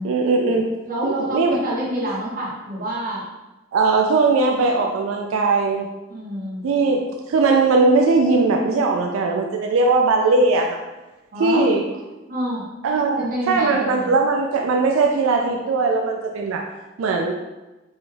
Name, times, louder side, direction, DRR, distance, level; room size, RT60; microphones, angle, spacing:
voice 1, 0.0-0.7 1.0-1.6 3.7-5.9 6.6-10.8 11.4-11.8 12.8-16.6 17.0-17.3, right 3 dB, 85° right, 2 dB, 0.3 m, -19 dB
voice 2, 0.8-3.3 6.1-6.7 11.3-11.6 12.3-12.7 13.2-14.1, right 1 dB, 40° right, -6 dB, 1.1 m, -27 dB
4.1 x 2.3 x 3.2 m, 1.1 s
head